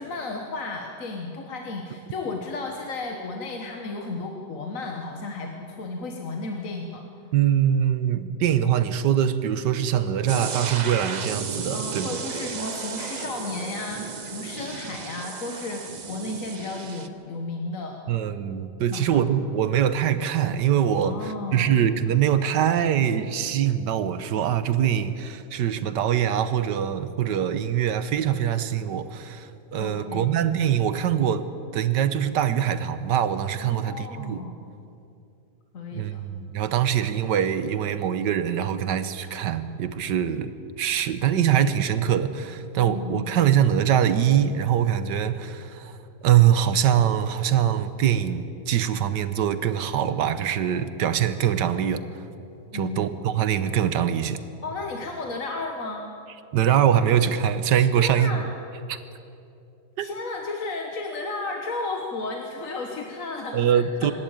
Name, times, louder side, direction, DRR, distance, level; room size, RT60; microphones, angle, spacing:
voice 1, 0.0-7.0 11.7-18.0 18.9-19.2 21.0-21.8 29.7-30.4 33.6-34.5 35.7-36.2 42.8-43.3 52.7-53.1 54.6-56.1 57.9-58.5 60.0-64.1, left 3 dB, 50° left, 2 dB, 1.6 m, -33 dB
voice 2, 7.3-12.1 18.1-31.4 31.7-34.4 35.9-40.5 40.8-46.0 46.2-52.0 52.7-54.4 56.5-58.3 58.9-59.0 60.0-60.1 63.5-64.1, right 9 dB, 80° right, 12 dB, 1.5 m, -23 dB
sound 1, 10.3-17.1, right 5 dB, 50° right, 0.5 m, -34 dB
25.5 x 11.5 x 8.8 m, 2.7 s
omnidirectional pair, 1.9 m